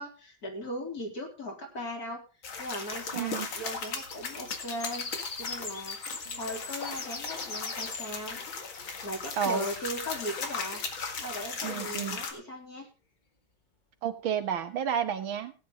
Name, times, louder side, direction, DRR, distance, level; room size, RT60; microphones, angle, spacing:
voice 1, 0.0-2.2 2.6-5.1 5.4-6.0 6.3-8.4 9.0-10.8 11.2-12.9, equal, 50° left, 0 dB, 4.0 m, -38 dB
sound 1, 2.4-12.3, left 5 dB, 90° left, 2.7 m, -38 dB
voice 2, 3.1-3.5 6.3-6.4 9.4-9.7 11.6-12.2 14.0-15.5, right 8 dB, 85° right, 8 dB, 2.0 m, -31 dB
sound 2, 3.7-8.1 8.7-8.8, left 4 dB, 30° left, 0.9 m, -40 dB
17.0 x 9.4 x 3.7 m, 0.33 s
omnidirectional pair, 2.1 m